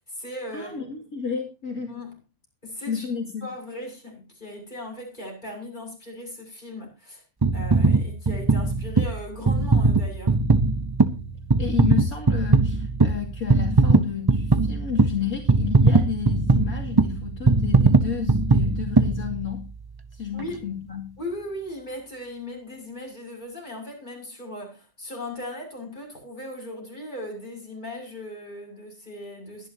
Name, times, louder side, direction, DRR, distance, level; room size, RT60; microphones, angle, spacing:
voice 1, 0.0-1.0 1.9-2.2 2.6-3.1 3.4-7.2 7.5-10.4 20.3-20.7 21.2-29.7, left 1 dB, 30° left, 6.5 m, -38 dB
voice 2, 0.5-1.9 2.9-3.5 11.6-19.7 20.1-21.1, left 7 dB, 65° left, 3.2 m, -31 dB
sound 1, 7.4-19.8 20.4-20.5, right 3 dB, 20° right, 0.6 m, -20 dB
22.5 x 10.5 x 2.8 m
omnidirectional pair, 1.7 m